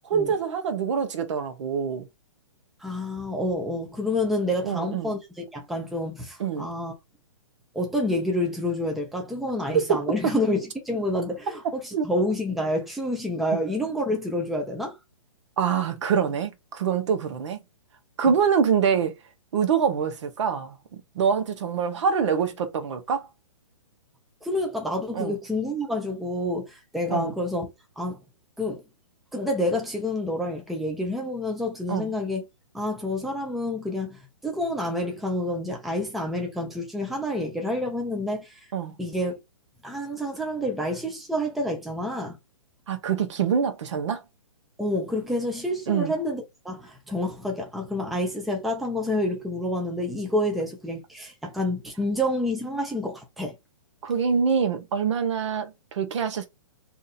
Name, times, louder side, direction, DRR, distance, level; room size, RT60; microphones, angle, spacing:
voice 1, 0.0-2.1 4.6-5.1 6.4-6.7 9.7-10.3 11.9-12.1 15.6-17.6 18.2-19.2 19.5-23.3 25.1-25.3 27.1-27.3 31.9-32.1 38.7-38.9 42.9-44.2 45.9-46.1 54.0-56.5, right 6 dB, 60° right, 0.9 m, -25 dB
voice 2, 2.8-6.9 7.7-15.0 24.4-27.7 28.0-28.2 28.6-28.8 29.3-32.4 32.7-38.6 39.0-39.3 39.8-42.4 44.8-53.5, left 1 dB, ahead, 0.6 m, -28 dB
2.7 x 2.5 x 4.1 m
hypercardioid pair, 150°, 17 cm